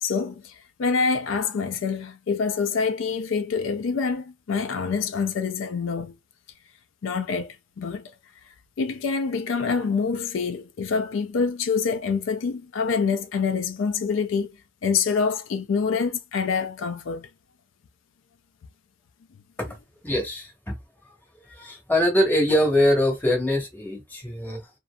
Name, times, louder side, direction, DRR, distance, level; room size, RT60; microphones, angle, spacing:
voice 1, 0.0-6.1 7.0-8.1 8.8-14.6 14.8-17.3, left 5 dB, 75° left, 0.4 m, -26 dB
voice 2, 20.0-20.7 21.1-21.2 21.4-24.7, left 1 dB, 10° left, 0.9 m, -23 dB
2.6 x 2.5 x 2.2 m
head